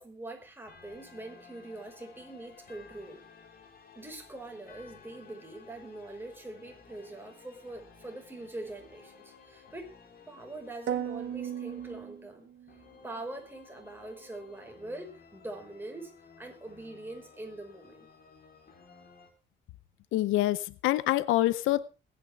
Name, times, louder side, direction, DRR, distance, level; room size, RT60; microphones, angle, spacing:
voice 1, 0.0-3.2 3.9-9.9 10.3-12.5 13.0-18.1, right 2 dB, 10° right, 5.1 m, -43 dB
sound 1, 0.7-19.3, left 5 dB, 50° left, 3.9 m, -55 dB
sound 2, 10.9-12.8, right 9 dB, 70° right, 1.3 m, -36 dB
voice 2, 20.1-21.9, left 15 dB, 90° left, 0.7 m, -26 dB
21.5 x 9.7 x 3.5 m
cardioid pair, 90°, 20 cm